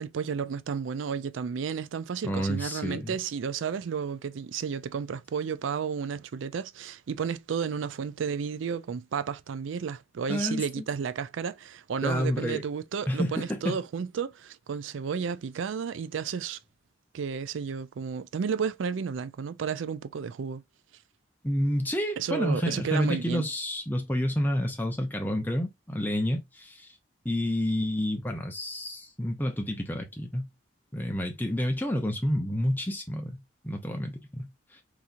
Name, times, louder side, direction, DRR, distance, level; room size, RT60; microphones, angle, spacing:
voice 1, 0.0-16.6 17.1-20.6 22.2-23.5, right 6 dB, 85° right, 0.4 m, -32 dB
voice 2, 2.2-3.2 10.3-10.8 12.0-12.6 13.1-13.8 21.4-26.9 27.2-30.5 30.9-33.4 33.6-34.5, equal, 10° left, 0.8 m, -29 dB
3.6 x 2.9 x 2.6 m
head